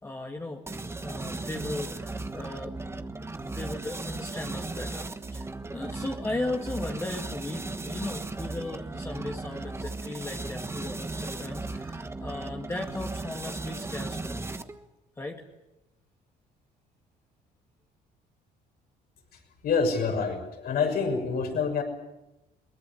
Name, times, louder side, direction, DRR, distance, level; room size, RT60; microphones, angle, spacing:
voice 1, 0.0-3.1 3.4-14.5 15.2-15.4, left 2 dB, 15° left, 1 dB, 2.1 m, -37 dB
sound 1, 0.7-14.9, right 3 dB, 15° right, 1.3 m, -36 dB
voice 2, 19.6-21.8, left 5 dB, 65° left, 4 dB, 6.5 m, -26 dB
22.5 x 19.5 x 8.5 m, 0.96 s
cardioid pair, 110°, 17 cm